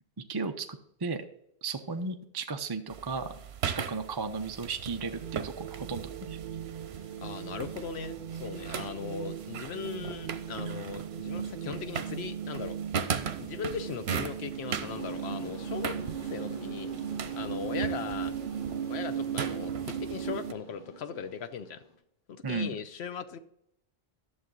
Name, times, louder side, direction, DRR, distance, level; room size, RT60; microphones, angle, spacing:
voice 1, 0.3-1.2 1.6-3.3 3.7-6.4 22.4-22.8, right 4 dB, 30° right, 6 dB, 0.5 m, -35 dB
sound 1, 2.9-20.5, right 7 dB, 90° right, 1.0 m, -39 dB
sound 2, 5.2-20.5, right 9 dB, 60° right, 0.7 m, -37 dB
voice 2, 7.2-12.8 13.4-16.9 17.3-18.3 18.9-21.8 22.3-23.4, left 6 dB, 90° left, 11 dB, 1.0 m, -39 dB
sound 3, 14.8-22.0, left 1 dB, 50° left, 2.0 m, -46 dB
11.0 x 7.1 x 3.8 m, 0.75 s
omnidirectional pair, 1.1 m